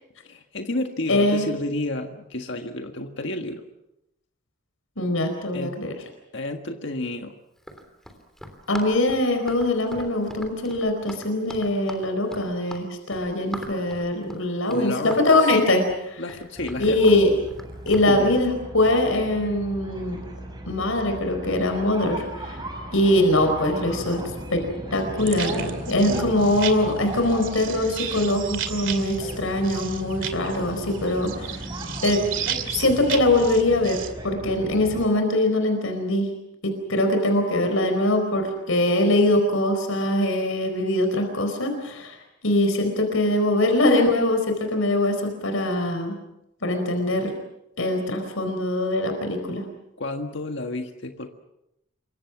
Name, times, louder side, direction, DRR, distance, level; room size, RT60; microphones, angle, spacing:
voice 1, 0.2-3.6 5.5-5.8 6.3-7.3 14.7-15.5 16.2-17.1 18.1-18.3 26.1-26.4 50.0-51.3, left 2 dB, 60° left, 4 dB, 1.7 m, -31 dB
voice 2, 1.1-1.5 5.0-5.9 8.7-16.2 16.8-17.3 17.9-20.2 20.7-22.6 22.9-24.2 24.5-24.6 24.9-31.7 32.0-32.4 32.7-36.3 36.6-42.2 42.4-46.1 46.6-47.4 47.8-49.6, left 1 dB, 85° left, 5 dB, 4.5 m, -22 dB
Run, 7.6-18.1, equal, ahead, 3.3 m, -41 dB
sound 1, 16.6-35.1, right 1 dB, 20° right, 5.7 m, -37 dB
sound 2, 25.2-34.1, right 9 dB, 65° right, 2.6 m, -34 dB
28.0 x 24.0 x 6.1 m, 0.84 s
head